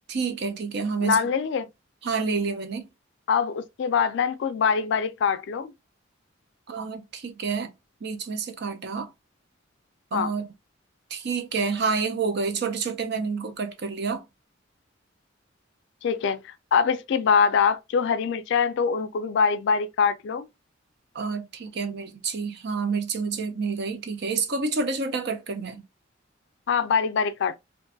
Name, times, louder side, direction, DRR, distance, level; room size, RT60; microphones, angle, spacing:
voice 1, 0.1-1.2 2.0-2.9 6.7-7.7 8.0-9.1 10.1-10.5 11.1-14.2 21.1-25.8, right 4 dB, 55° right, 0.5 m, -28 dB
voice 2, 1.0-1.7 3.3-5.7 10.1-10.3 16.0-20.5 26.7-27.6, left 6 dB, 60° left, 0.3 m, -24 dB
2.5 x 2.2 x 2.6 m
head